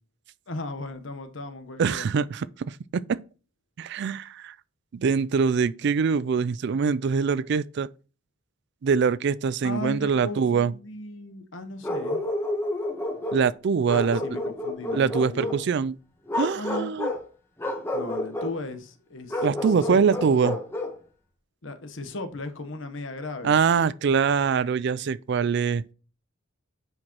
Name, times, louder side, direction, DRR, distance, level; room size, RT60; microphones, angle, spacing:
voice 1, 0.5-2.1 9.6-12.2 13.9-15.5 16.5-16.9 17.9-20.6 21.6-23.6, left 2 dB, 70° left, 1.1 m, -37 dB
voice 2, 1.8-3.2 3.8-4.5 4.9-7.9 8.8-10.7 13.3-14.2 14.9-16.0 16.3-17.1 19.4-20.6 23.4-25.8, right 6 dB, 60° right, 0.4 m, -24 dB
Bark, 11.8-13.4 13.9-15.6 16.3-17.2 17.6-18.5 19.3-21.0, left 1 dB, 10° left, 1.2 m, -30 dB
9.5 x 4.9 x 3.0 m
head